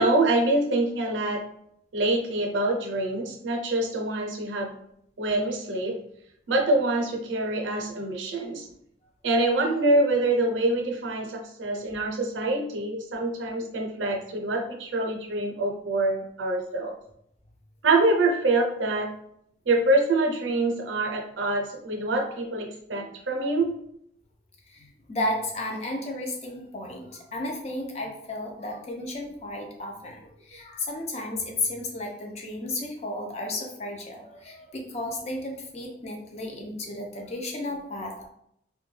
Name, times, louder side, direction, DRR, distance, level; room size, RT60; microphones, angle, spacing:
voice 1, 0.0-1.4 1.9-4.7 5.2-5.9 6.5-8.7 9.2-16.9 17.8-19.1 19.7-23.7, right 2 dB, 80° right, 1 dB, 0.5 m, -25 dB
voice 2, 24.7-38.3, left 1 dB, 35° left, 1 dB, 0.4 m, -33 dB
2.2 x 2.1 x 3.1 m, 0.73 s
head